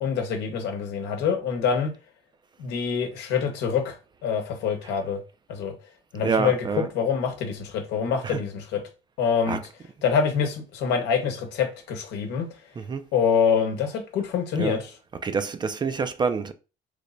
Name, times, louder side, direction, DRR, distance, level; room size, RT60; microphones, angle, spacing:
voice 1, 0.0-1.9 2.6-5.2 5.5-5.7 6.1-8.8 9.2-9.6 10.0-12.5 13.1-14.8, left 6 dB, 85° left, 0.9 m, -25 dB
voice 2, 6.2-6.9 8.2-8.4 9.5-9.7 10.0-10.1 12.8-13.1 14.6-14.8 15.1-16.5, right 5 dB, 25° right, 0.3 m, -27 dB
3.2 x 2.1 x 3.8 m
cardioid pair, 110°, 17 cm